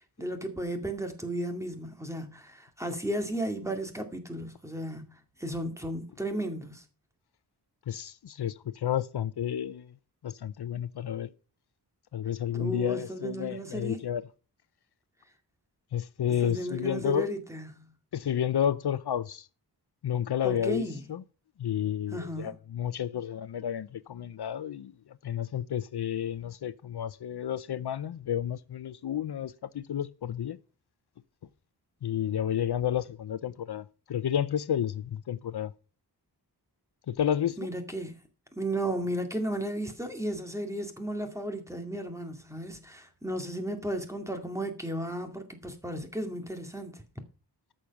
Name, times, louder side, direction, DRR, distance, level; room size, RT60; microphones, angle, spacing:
voice 1, 0.2-6.8 12.5-14.0 16.4-17.9 20.4-21.0 22.1-22.5 37.6-38.2 38.6-47.0, right 1 dB, 5° right, 2.1 m, -34 dB
voice 2, 7.9-9.9 10.2-11.3 12.1-14.2 15.9-17.3 18.1-19.5 20.0-21.2 21.6-30.6 32.0-35.7 37.1-37.6, left 9 dB, 75° left, 0.6 m, -31 dB
14.0 x 6.5 x 5.9 m
wide cardioid pair, 115°, 40 cm